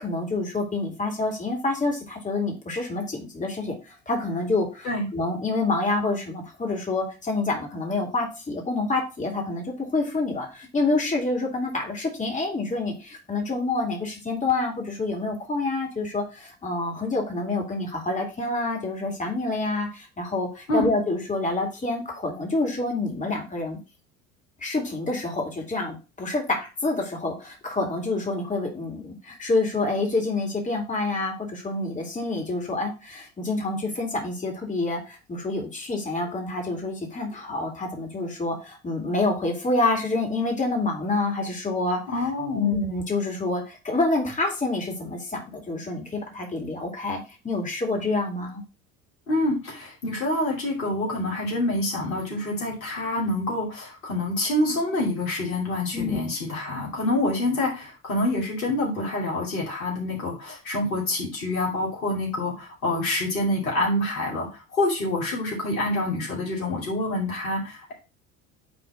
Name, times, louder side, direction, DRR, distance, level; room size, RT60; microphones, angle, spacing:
voice 1, 0.0-23.8 24.6-42.0 42.6-48.6 55.9-56.2, left 2 dB, 15° left, 1 dB, 2.5 m, -27 dB
voice 2, 42.1-42.7 49.3-67.9, left 1 dB, 75° left, -3 dB, 2.7 m, -27 dB
9.1 x 3.8 x 3.9 m, 0.30 s
figure-of-eight pair, 60°, 42 cm